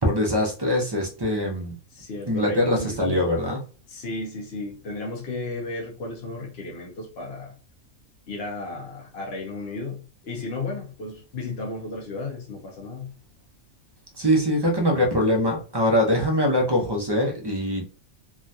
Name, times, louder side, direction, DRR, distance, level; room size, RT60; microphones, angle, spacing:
voice 1, 0.0-1.8 2.3-3.6 14.1-17.9, left 1 dB, 25° right, 1 dB, 0.5 m, -23 dB
voice 2, 1.9-3.1 3.9-7.5 8.3-13.1, left 2 dB, 55° left, -2 dB, 1.0 m, -34 dB
3.6 x 2.3 x 2.6 m, 0.36 s
omnidirectional pair, 1.4 m